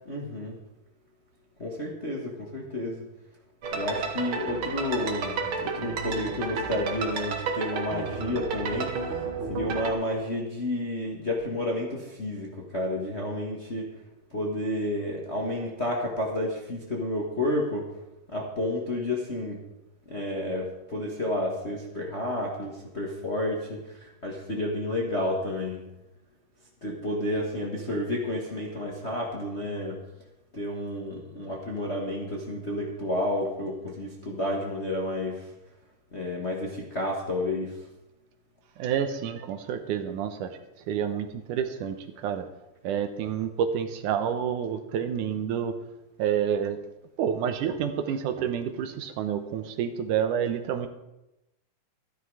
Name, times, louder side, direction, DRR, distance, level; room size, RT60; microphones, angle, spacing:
voice 1, 0.0-0.6 1.6-3.0 3.7-9.0 9.5-13.9 14.3-18.0 18.3-19.6 20.1-25.8 26.8-30.0 30.5-35.5 36.1-37.9, left 1 dB, 30° left, -2 dB, 1.2 m, -31 dB
sound 1, 3.6-9.9, right 4 dB, 55° right, 1.6 m, -32 dB
voice 2, 38.8-40.5 40.9-42.0 42.2-42.4 42.8-45.8 46.2-46.8 47.2-50.9, right 8 dB, 80° right, 8 dB, 2.3 m, -28 dB
13.0 x 11.5 x 4.8 m, 0.92 s
omnidirectional pair, 3.7 m